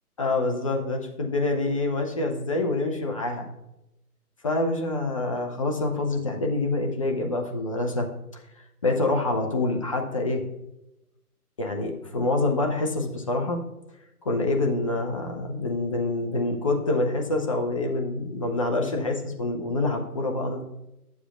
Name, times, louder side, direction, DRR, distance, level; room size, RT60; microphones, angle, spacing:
voice 1, 0.2-3.5 4.4-8.1 8.8-10.5 11.6-13.6 14.2-20.6, left 2 dB, 20° left, 2 dB, 0.5 m, -26 dB
11.0 x 7.2 x 2.4 m, 0.90 s
figure-of-eight pair, 140°, 46 cm